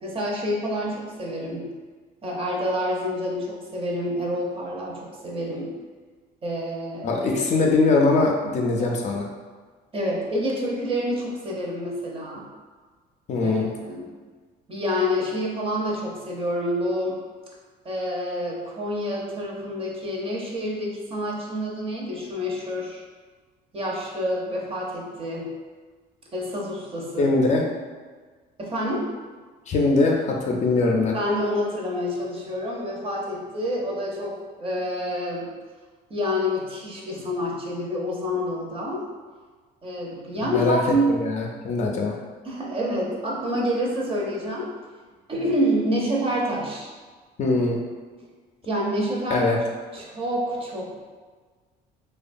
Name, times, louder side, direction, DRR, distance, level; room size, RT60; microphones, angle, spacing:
voice 1, 0.0-1.7 2.2-5.7 6.4-7.1 7.6-7.7 8.8-8.9 9.9-12.4 13.4-14.1 14.7-17.2 17.8-23.0 23.7-25.5 26.3-27.3 28.6-29.1 31.1-35.5 36.1-39.0 39.8-41.2 42.4-44.7 45.3-46.9 48.6-49.4 49.9-51.0, equal, 35° right, -3 dB, 0.6 m, -28 dB
voice 2, 7.0-9.3 13.3-13.7 27.2-27.6 29.7-31.2 40.4-40.8 41.1-42.2 47.4-47.8 49.3-49.6, left 3 dB, 45° left, 0 dB, 0.4 m, -22 dB
2.8 x 2.2 x 2.5 m, 1.4 s
cardioid pair, 110°, 17 cm